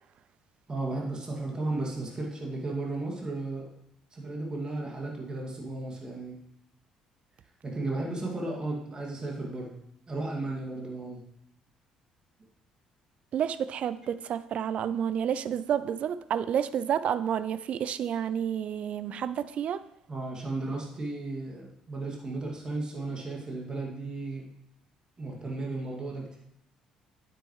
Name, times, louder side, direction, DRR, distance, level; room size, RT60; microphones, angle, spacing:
voice 1, 0.7-3.7 4.1-6.4 7.6-9.7 10.1-11.2 20.1-24.5 25.2-26.4, right 2 dB, 30° right, 2.3 m, -34 dB
voice 2, 13.3-19.8, right 9 dB, 50° right, 0.5 m, -30 dB
9.2 x 8.6 x 3.2 m
figure-of-eight pair, 50°, 3 cm